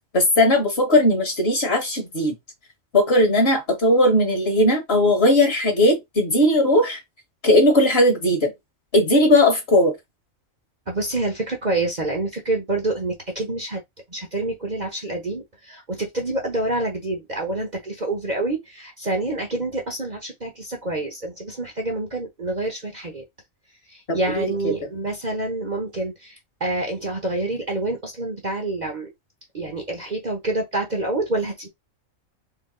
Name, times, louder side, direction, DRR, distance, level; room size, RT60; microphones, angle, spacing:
voice 1, 0.1-2.4 2.9-7.0 7.4-8.5 8.9-10.0 24.1-24.7, left 1 dB, 50° left, 1.9 m, -18 dB
voice 2, 10.9-13.8 14.1-23.2 23.9-29.1 29.5-31.7, right 2 dB, 35° right, 1.0 m, -27 dB
4.7 x 2.5 x 3.8 m
omnidirectional pair, 1.4 m